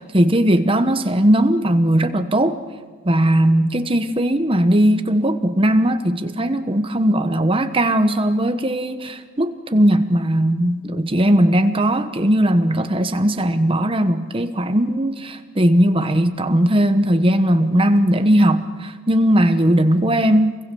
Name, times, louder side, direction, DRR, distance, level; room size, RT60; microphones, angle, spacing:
voice 1, 0.0-2.6 3.0-20.6, right 1 dB, 25° right, 1.1 m, -18 dB
28.0 x 22.0 x 7.0 m
head